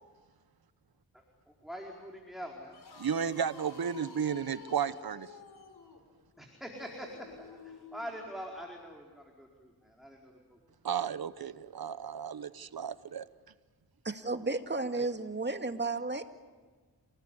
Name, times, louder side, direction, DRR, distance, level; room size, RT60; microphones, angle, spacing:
voice 1, 1.5-2.8 6.4-7.1 7.4-10.6, equal, ahead, 0 dB, 4.6 m, -44 dB
sound 1, 2.6-8.3, left 4 dB, 85° left, 4.2 m, -51 dB
voice 2, 3.0-5.3 10.8-13.3 14.9-15.1, right 7 dB, 70° right, 14 dB, 1.1 m, -33 dB
voice 3, 14.0-16.2, right 3 dB, 30° right, 7 dB, 2.2 m, -33 dB
28.5 x 19.5 x 9.9 m, 1.4 s
cardioid pair, 55°, 37 cm